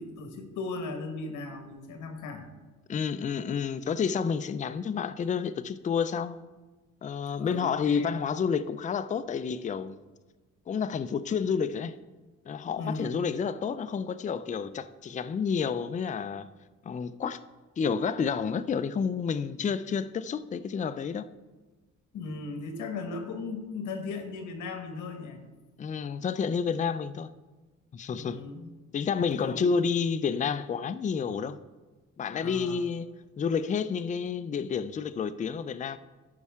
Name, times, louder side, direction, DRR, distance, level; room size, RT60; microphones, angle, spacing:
voice 1, 0.0-2.5 7.4-8.2 12.8-13.2 22.1-25.4 28.1-28.7 29.4-29.9 32.3-32.8, left 3 dB, 80° left, 1.4 m, -37 dB
voice 2, 2.9-6.4 7.0-10.0 10.7-12.0 12.5-16.5 16.9-17.4 17.8-21.3 25.8-27.3 27.9-28.4 28.9-31.6 32.2-33.1 33.4-36.0, left 6 dB, 25° left, 0.4 m, -30 dB
14.0 x 5.5 x 3.6 m
cardioid pair, 90°, 30 cm